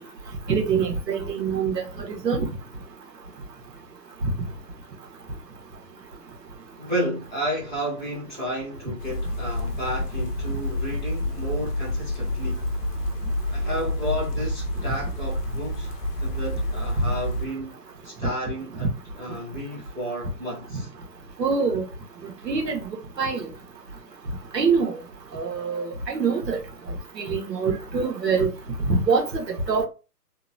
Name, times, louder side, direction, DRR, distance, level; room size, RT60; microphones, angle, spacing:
voice 1, 0.5-1.8 2.2-2.5 21.4-21.8 22.5-22.8 23.2-23.5 24.5-25.0 25.3-26.6 27.2-28.5 28.9-29.8, right 5 dB, 80° right, 1.1 m, -24 dB
voice 2, 6.8-12.6 13.5-15.9 16.2-17.8 18.0-18.9 19.2-20.9, equal, 30° right, 0.7 m, -32 dB
sound 1, 9.0-17.5, left 1 dB, 70° left, 0.6 m, -28 dB
2.9 x 2.0 x 2.6 m
hypercardioid pair, 170°, 48 cm